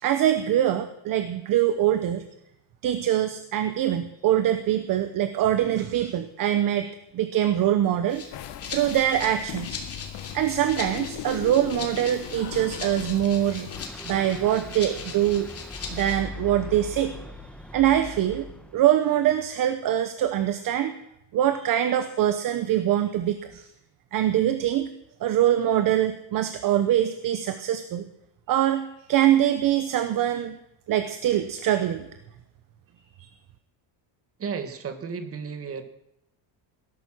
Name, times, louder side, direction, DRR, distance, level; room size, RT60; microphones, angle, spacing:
voice 1, 0.0-2.2 2.8-6.9 7.1-8.2 8.7-9.8 10.3-13.7 14.0-15.5 15.9-17.2 17.7-18.5 18.7-20.9 21.3-23.7 24.1-24.9 25.2-28.1 28.5-30.6 30.9-32.1, right 11 dB, 45° right, 10 dB, 1.0 m, -23 dB
Rattle (instrument), 8.1-16.2, left 5 dB, 30° left, 2.8 m, -40 dB
sound 1, 8.3-13.9, left 12 dB, 55° left, 1.1 m, -38 dB
sound 2, 13.7-18.8, left 2 dB, ahead, 1.0 m, -40 dB
voice 2, 34.4-35.8, right 6 dB, 30° right, 8 dB, 1.6 m, -33 dB
18.5 x 11.5 x 6.2 m, 0.82 s
cardioid pair, 170°, 47 cm